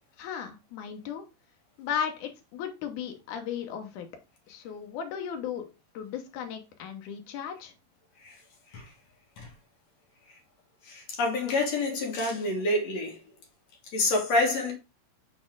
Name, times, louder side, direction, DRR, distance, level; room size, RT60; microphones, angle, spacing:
voice 1, 0.2-1.2 1.8-4.1 4.5-5.7 5.9-7.7, left 8 dB, 70° left, 2.1 m, -35 dB
voice 2, 10.8-13.2 13.9-14.7, left 2 dB, 55° left, 2.3 m, -27 dB
6.2 x 4.2 x 3.7 m
omnidirectional pair, 4.5 m